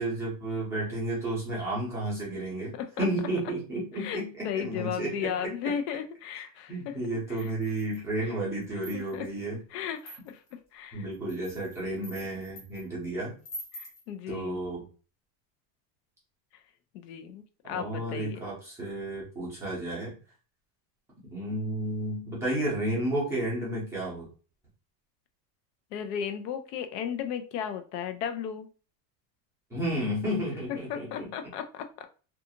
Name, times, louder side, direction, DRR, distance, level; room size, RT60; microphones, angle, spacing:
voice 1, 0.0-2.7 3.0-5.7 6.7-9.6 10.9-13.3 14.3-14.9 17.6-20.1 21.3-24.3 29.7-31.3, right 1 dB, 5° right, -8 dB, 0.5 m, -32 dB
voice 2, 3.9-7.0 7.3-7.5 8.2-8.3 8.7-9.3 9.7-11.1 12.2-12.3 13.7-14.6 16.9-18.4 25.9-28.7 30.7-31.9, left 8 dB, 75° left, 8 dB, 0.6 m, -35 dB
sound 1, 7.4-8.1 8.6-9.3 10.0-10.5 11.1-12.8 13.4-14.0, equal, 30° left, 0.7 m, -45 dB
2.4 x 2.4 x 2.7 m, 0.37 s
supercardioid pair, 170°, 49 cm